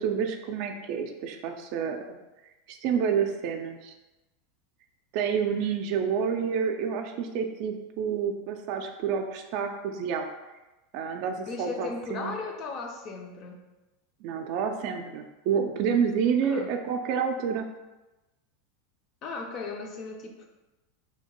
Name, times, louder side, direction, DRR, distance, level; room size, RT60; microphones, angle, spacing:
voice 1, 0.0-2.2 2.7-3.9 5.1-10.3 10.9-12.4 14.2-17.7, right 7 dB, 60° right, 5 dB, 0.3 m, -29 dB
voice 2, 11.5-13.6 16.4-16.7 19.2-20.5, left 4 dB, 45° left, 3 dB, 0.4 m, -36 dB
2.7 x 2.2 x 2.9 m, 1.1 s
hypercardioid pair, 115°, 0 cm